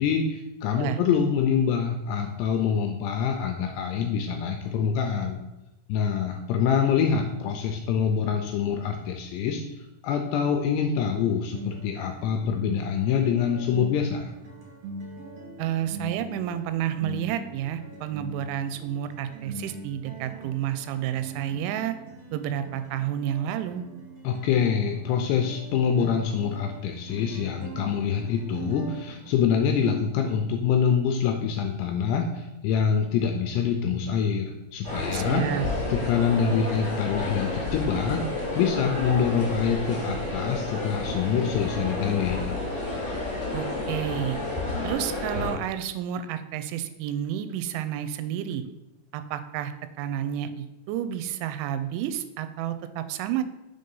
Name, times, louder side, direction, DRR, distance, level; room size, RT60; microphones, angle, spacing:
voice 1, 0.0-5.4 5.9-9.6 10.0-14.3 24.2-35.5 35.9-38.2 38.6-42.6, left 7 dB, 85° left, 4 dB, 2.4 m, -25 dB
sound 1, 11.5-29.3, right 2 dB, 60° right, 1.7 m, -42 dB
voice 2, 15.6-22.0 22.3-23.8 35.1-35.7 43.5-44.4 44.8-48.6 49.1-49.7 50.0-53.4, right 10 dB, 90° right, 10 dB, 3.0 m, -30 dB
sound 2, 34.8-45.5, left 2 dB, 30° left, 1.0 m, -31 dB
6.9 x 3.8 x 5.3 m, 0.98 s
omnidirectional pair, 5.3 m